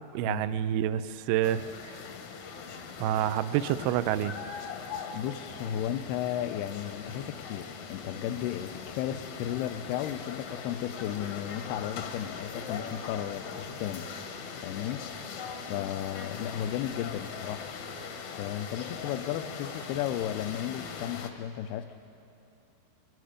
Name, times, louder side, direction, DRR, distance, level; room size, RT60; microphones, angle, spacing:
voice 1, 0.0-2.0 3.0-4.4, right 11 dB, 80° right, 13 dB, 2.2 m, -28 dB
sound 1, 1.4-21.3, left 6 dB, 65° left, 1.9 m, -41 dB
voice 2, 5.1-14.1 14.6-15.1 15.7-17.7 18.3-22.0, left 11 dB, 80° left, 11 dB, 2.5 m, -34 dB
28.5 x 22.5 x 5.0 m, 2.9 s
omnidirectional pair, 5.0 m